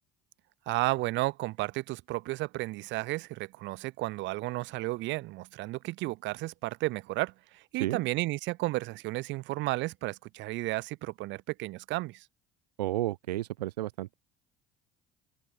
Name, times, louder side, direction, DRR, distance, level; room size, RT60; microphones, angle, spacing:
voice 1, 0.7-12.2, right 20 dB, 65° right, 1.6 m, -33 dB
voice 2, 12.8-14.1, right 15 dB, 90° right, 1.7 m, -32 dB
hypercardioid pair, 70°, 20 cm